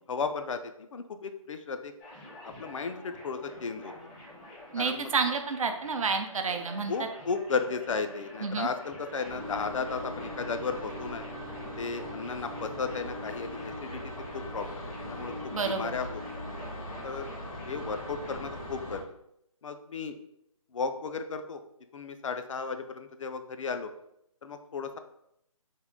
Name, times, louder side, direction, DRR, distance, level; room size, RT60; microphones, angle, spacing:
voice 1, 0.1-1.9 2.4-3.9 4.8-5.1 6.9-11.3 11.8-14.0 14.3-16.4 17.0-17.3 17.7-19.0 19.6-20.2 20.7-21.6 21.9-23.9 24.4-25.0, left 5 dB, 65° left, 8 dB, 0.4 m, -34 dB
sound 1, 2.0-18.5, left 1 dB, 10° left, 0.5 m, -49 dB
voice 2, 4.7-7.1 8.4-8.7 15.5-15.9, right 4 dB, 70° right, 6 dB, 0.5 m, -30 dB
sound 2, 9.2-19.0, left 1 dB, 85° left, 1.5 m, -40 dB
3.6 x 2.1 x 3.6 m, 0.77 s
figure-of-eight pair, 155°, 18 cm